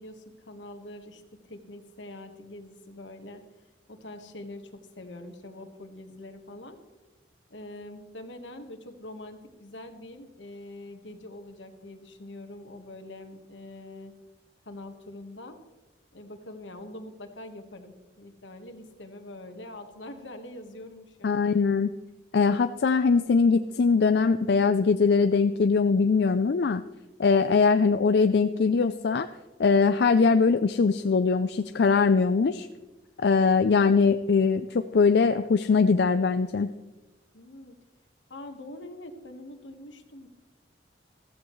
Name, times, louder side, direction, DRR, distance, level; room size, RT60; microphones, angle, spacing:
voice 1, 0.0-3.4 3.9-6.8 7.5-14.1 14.6-15.6 16.1-21.4 37.3-37.8 38.3-40.3, left 1 dB, 80° left, 6 dB, 1.5 m, -44 dB
voice 2, 21.2-21.9 22.3-26.8 27.2-29.3 29.6-32.7 33.2-36.7, left 5 dB, 60° left, 9 dB, 0.4 m, -22 dB
15.0 x 14.5 x 3.2 m, 1.2 s
head